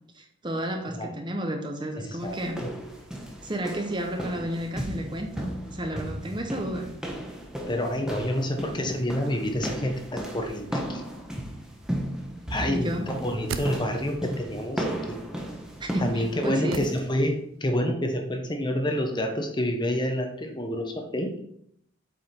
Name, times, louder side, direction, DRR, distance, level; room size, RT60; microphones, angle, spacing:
voice 1, 0.1-2.6 3.4-6.9 12.7-13.1 15.8-16.9, equal, 20° right, 4 dB, 0.7 m, -32 dB
voice 2, 2.0-2.7 7.7-11.0 12.5-15.2 16.0-21.3, equal, 20° left, 4 dB, 0.9 m, -28 dB
sound 1, 2.2-16.5, equal, 5° right, 1.0 m, -35 dB
sound 2, 13.1-14.3 16.7-17.6 17.9-18.0, right 4 dB, 70° right, 0.5 m, -38 dB
7.9 x 4.9 x 4.3 m, 0.70 s
head